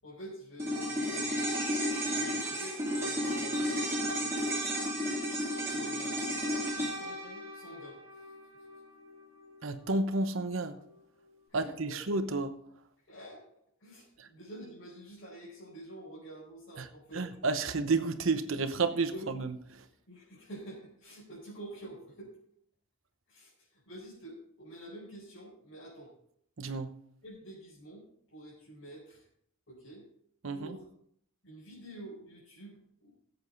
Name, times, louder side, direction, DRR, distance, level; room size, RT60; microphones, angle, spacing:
voice 1, 0.0-1.6 2.1-4.6 5.7-8.2 11.5-12.0 13.0-13.4 13.8-17.3 19.1-19.3 20.1-22.3 23.3-26.1 27.2-29.2 29.7-30.1 30.5-30.9 31.4-33.1, right 1 dB, 65° left, 5.1 m, -48 dB
sound 1, 0.6-9.1 9.4-9.5, equal, 15° right, 2.7 m, -33 dB
voice 2, 9.6-10.8 11.5-12.5 14.2-14.3 16.8-16.9 17.1-19.5 26.6-26.9 30.4-30.8, right 3 dB, 65° right, 0.9 m, -31 dB
16.0 x 7.9 x 3.9 m
head